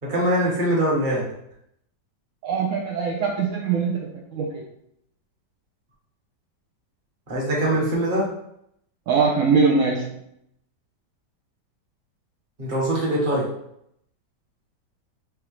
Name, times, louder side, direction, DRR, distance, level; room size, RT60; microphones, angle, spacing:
voice 1, 0.0-1.2 7.3-8.3 12.6-13.5, right 1 dB, 30° right, -4 dB, 1.2 m, -22 dB
voice 2, 2.4-4.6 9.1-10.1, right 5 dB, 70° right, -1 dB, 0.8 m, -22 dB
4.9 x 3.1 x 3.1 m, 0.75 s
omnidirectional pair, 1.8 m